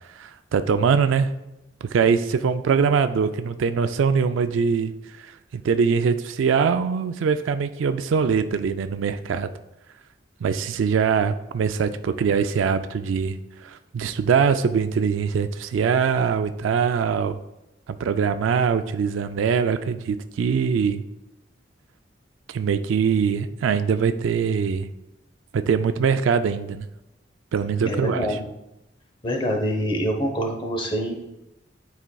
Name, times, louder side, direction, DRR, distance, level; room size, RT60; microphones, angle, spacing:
voice 1, 0.1-1.3 1.8-4.9 5.2-9.5 10.4-17.4 17.9-21.0 22.5-24.9 25.5-26.9 27.5-28.4, right 6 dB, 85° right, 10 dB, 0.3 m, -22 dB
voice 2, 27.8-28.4 29.2-31.2, equal, 25° left, 2 dB, 0.8 m, -25 dB
10.5 x 4.2 x 2.3 m, 0.92 s
head